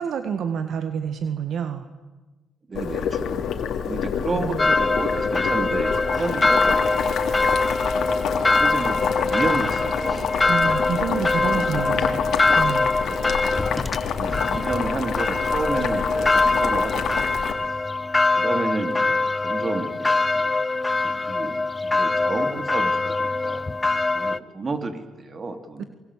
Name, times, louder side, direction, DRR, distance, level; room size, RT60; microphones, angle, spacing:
voice 1, 0.0-1.9 4.3-4.7 10.5-12.2 12.5-12.9 25.8-25.9, right 7 dB, 65° right, 9 dB, 1.8 m, -28 dB
Boiling, 2.7-17.5, left 8 dB, 70° left, 2.9 m, -28 dB
voice 2, 2.7-3.5 3.8-7.0 8.1-10.4 11.1-12.4 13.0-13.5 14.2-17.3 18.4-20.5 21.0-21.5 21.8-25.8, right 3 dB, 35° right, 8 dB, 3.4 m, -31 dB
sound 1, 4.6-24.4, left 3 dB, 20° left, 0.8 m, -23 dB
27.0 x 23.5 x 8.6 m, 1.2 s
cardioid pair, 90°, 0 cm